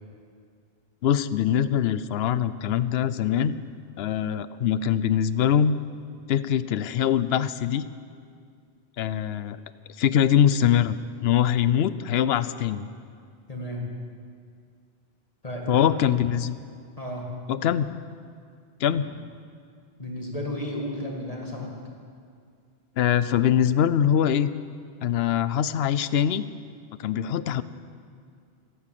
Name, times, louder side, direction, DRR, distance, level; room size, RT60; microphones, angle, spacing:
voice 1, 1.0-3.5 4.0-5.8 6.3-7.8 9.0-9.6 10.0-11.0 11.2-12.9 15.7-16.6 17.5-17.9 18.8-19.1 23.0-24.5 25.0-26.5 27.0-27.6, left 9 dB, 75° left, 15 dB, 0.8 m, -23 dB
voice 2, 13.5-13.8 15.4-15.9 17.0-17.3 17.6-17.7 20.0-21.7, left 1 dB, 35° left, -1 dB, 2.1 m, -33 dB
15.0 x 11.5 x 7.6 m, 2.2 s
omnidirectional pair, 1.1 m